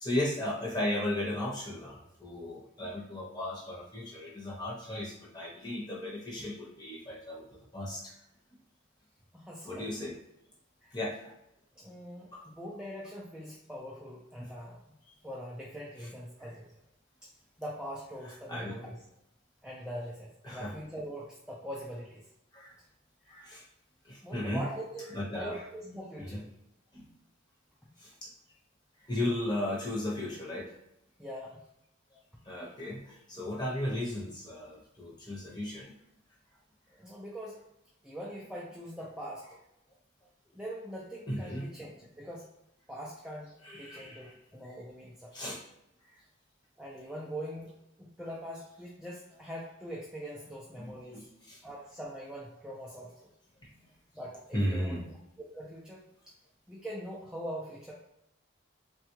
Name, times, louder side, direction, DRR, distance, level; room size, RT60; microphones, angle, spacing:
voice 1, 0.0-7.4 7.7-8.0 9.6-10.1 10.9-11.3 12.3-12.4 14.4-14.5 16.0-16.1 18.3-18.7 20.4-20.8 22.5-22.7 23.3-23.6 24.1-25.7 26.2-26.4 26.9-27.0 28.0-28.1 29.1-30.7 32.5-35.9 39.4-39.6 41.3-41.7 43.6-44.3 45.3-45.6 50.7-51.6 53.6-53.9 54.5-55.1, left 1 dB, 20° left, -4 dB, 0.8 m, -35 dB
voice 2, 9.3-9.9 10.8-11.0 11.8-15.0 15.2-16.7 17.2-17.3 17.6-19.0 19.6-22.2 23.2-23.3 24.2-26.4 31.2-31.6 37.0-37.6 38.0-39.5 40.5-42.5 42.9-45.5 46.8-51.2 51.6-53.1 54.1-55.0 55.5-56.0 56.7-57.9, equal, 5° right, -6 dB, 0.3 m, -42 dB
3.3 x 2.3 x 3.0 m, 0.80 s
head